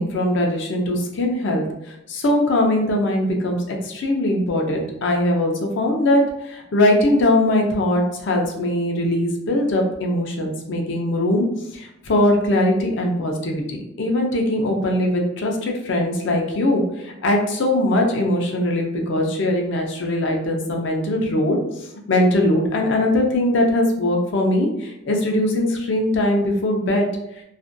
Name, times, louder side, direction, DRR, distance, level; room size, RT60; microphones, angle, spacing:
voice 1, 0.0-11.5 11.7-27.1, left 1 dB, 65° left, 2 dB, 0.5 m, -21 dB
2.5 x 2.1 x 2.5 m, 0.84 s
head